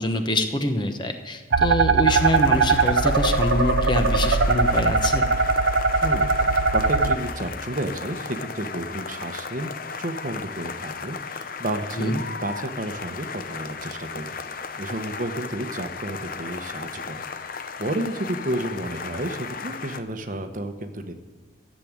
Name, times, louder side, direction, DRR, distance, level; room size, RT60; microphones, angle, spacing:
voice 1, 0.0-5.3 12.0-12.2, left 1 dB, 25° left, 6 dB, 1.0 m, -25 dB
sound 1, 1.5-7.1, right 4 dB, 90° right, 0.8 m, -20 dB
sound 2, 2.1-20.0, left 5 dB, 45° left, 0.8 m, -35 dB
voice 2, 6.7-9.7 10.0-14.4 14.8-17.2 17.8-21.2, right 1 dB, 45° right, 7 dB, 1.0 m, -31 dB
14.0 x 7.6 x 8.7 m, 1.3 s
head